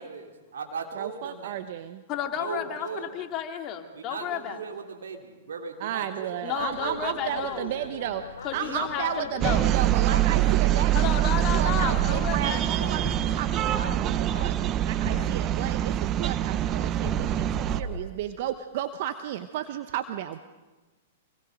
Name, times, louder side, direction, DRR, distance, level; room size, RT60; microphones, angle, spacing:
voice 1, 0.0-1.6 2.3-3.2 3.9-8.1 8.5-9.0, right 5 dB, 75° right, 2 dB, 3.2 m, -38 dB
voice 2, 1.0-2.0 5.8-8.2 8.5-14.6 14.8-20.4, right 11 dB, 55° right, 10 dB, 0.9 m, -33 dB
voice 3, 2.1-4.6 6.4-7.7 8.4-9.7 10.9-12.6, left 9 dB, 35° left, 4 dB, 2.3 m, -32 dB
Boat Water vehicle, 6.6-15.8, left 5 dB, 85° left, 1.1 m, -43 dB
sound 1, 9.4-17.8, right 12 dB, 30° right, 0.6 m, -25 dB
sound 2, 13.0-18.0, right 1 dB, 10° right, 3.4 m, -40 dB
27.0 x 21.0 x 5.2 m, 1.2 s
hypercardioid pair, 110°, 0 cm